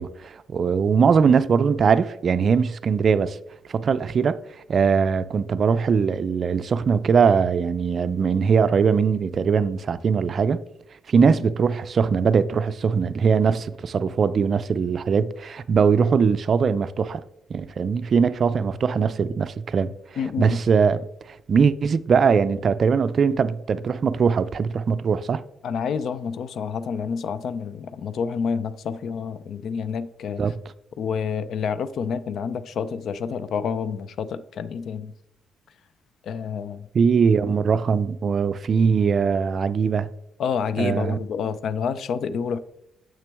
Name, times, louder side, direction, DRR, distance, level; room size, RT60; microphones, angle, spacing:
voice 1, 0.0-3.4 3.7-4.4 4.7-10.6 11.1-17.2 17.5-25.4 30.4-30.6 36.9-40.1 40.8-41.2, right 6 dB, 50° right, 0.3 m, -21 dB
voice 2, 20.2-20.6 25.6-30.4 31.0-35.1 36.3-36.9 40.4-42.6, left 6 dB, 65° left, 0.4 m, -28 dB
6.8 x 6.0 x 3.4 m
cardioid pair, 90°, 0 cm